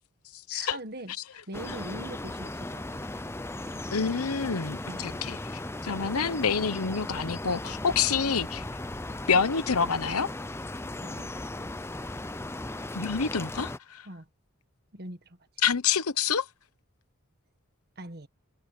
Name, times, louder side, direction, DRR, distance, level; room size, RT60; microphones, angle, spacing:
voice 1, 0.5-3.2 3.7-3.8 4.9-5.2 11.0-11.3 14.0-14.3 14.9-15.4 18.0-18.3, right 1 dB, 45° right, 1.7 m, -42 dB
sound 1, 1.5-13.8, left 2 dB, 10° left, 0.6 m, -37 dB
voice 2, 3.9-5.4 5.8-8.6 9.3-10.3 12.9-14.0 15.6-16.4, left 6 dB, 90° left, 1.0 m, -27 dB
head